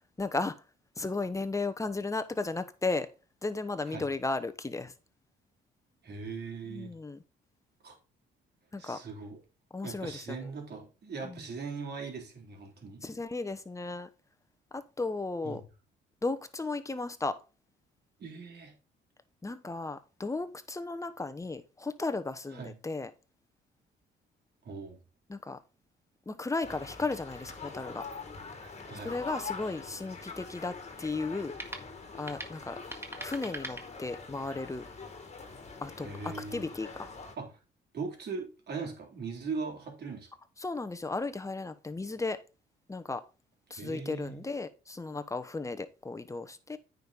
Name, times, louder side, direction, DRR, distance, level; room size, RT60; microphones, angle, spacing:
voice 1, 0.2-0.5 1.0-3.1 3.4-4.9 6.7-7.2 8.7-9.0 9.7-10.5 11.2-11.4 13.0-14.1 14.7-15.6 16.2-17.4 19.4-23.1 25.3-25.6 26.3-28.1 29.0-31.5 32.2-32.8 33.2-34.9 35.8-37.1 40.6-42.4 42.9-43.2 43.7-46.8, left 3 dB, 15° left, 1.0 m, -35 dB
voice 2, 6.0-7.0 7.8-8.0 8.8-9.4 9.8-13.1 15.4-15.7 18.2-18.7 22.5-22.8 24.6-25.0 28.9-29.1 36.0-36.6 37.4-37.5 37.9-40.3 43.7-44.5, right 4 dB, 55° right, 3.7 m, -40 dB
sound 1, 26.6-37.3, left 4 dB, 35° left, 2.1 m, -44 dB
sound 2, 31.5-34.5, right 1 dB, 10° right, 1.7 m, -46 dB
9.2 x 5.4 x 4.1 m
cardioid pair, 90°, 20 cm